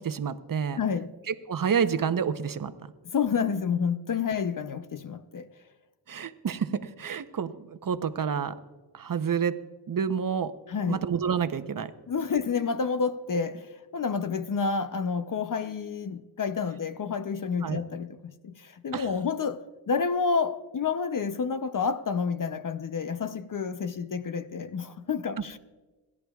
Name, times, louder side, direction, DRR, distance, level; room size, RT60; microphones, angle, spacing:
voice 1, 0.0-0.8 1.3-2.7 6.1-8.6 8.9-9.6 9.9-10.5 10.9-11.9 17.6-17.8 18.9-19.1, right 7 dB, 50° right, 0.8 m, -29 dB
voice 2, 0.8-1.1 3.1-5.5 10.7-11.0 12.1-25.6, left 5 dB, 45° left, 0.6 m, -29 dB
28.0 x 11.0 x 2.4 m
cardioid pair, 60°, 44 cm